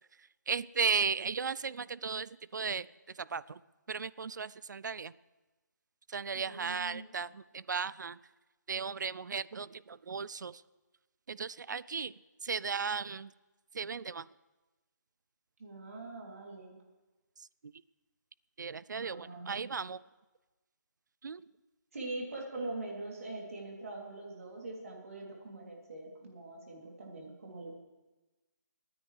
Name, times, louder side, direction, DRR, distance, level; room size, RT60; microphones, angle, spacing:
voice 1, 0.5-2.9 3.3-3.6 3.9-5.1 6.1-8.2 8.7-10.5 11.3-12.1 12.4-13.3 13.7-14.2 18.6-20.0 21.2-21.4, right 5 dB, 70° right, 20 dB, 0.4 m, -35 dB
voice 2, 6.3-7.1 15.6-16.7 19.0-19.7 21.9-27.8, right 2 dB, 50° right, -1 dB, 3.0 m, -43 dB
26.0 x 9.7 x 3.3 m, 1.2 s
hypercardioid pair, 180°, 10 cm